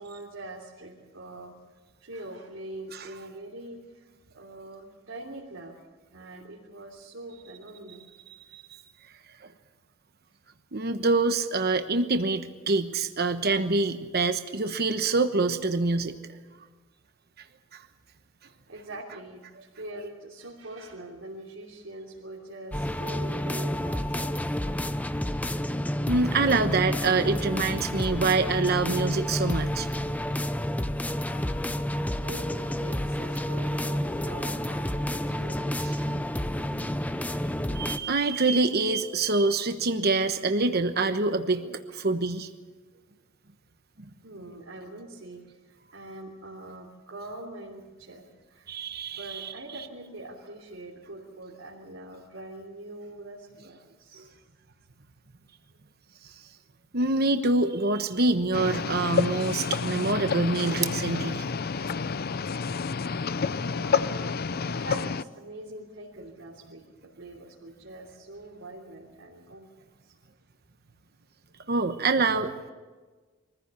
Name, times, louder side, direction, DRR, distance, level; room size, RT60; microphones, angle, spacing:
voice 1, 0.0-1.5 2.0-4.0 4.3-5.7 6.1-8.0 18.4-24.4 32.2-35.8 37.6-37.7 41.9-42.0 44.2-48.7 49.2-54.3 63.6-64.4 64.6-70.1, right 1 dB, 85° right, -4 dB, 3.2 m, -43 dB
voice 2, 10.7-16.1 17.7-17.8 26.1-29.9 35.8-35.9 37.7-42.5 48.7-49.5 56.9-61.4 71.7-72.5, right 3 dB, 55° right, 8 dB, 1.2 m, -25 dB
sound 1, 22.7-38.0, left 1 dB, 10° left, 0.7 m, -30 dB
sound 2, 58.5-65.2, left 5 dB, 50° left, 0.6 m, -29 dB
24.0 x 15.5 x 8.4 m, 1.3 s
head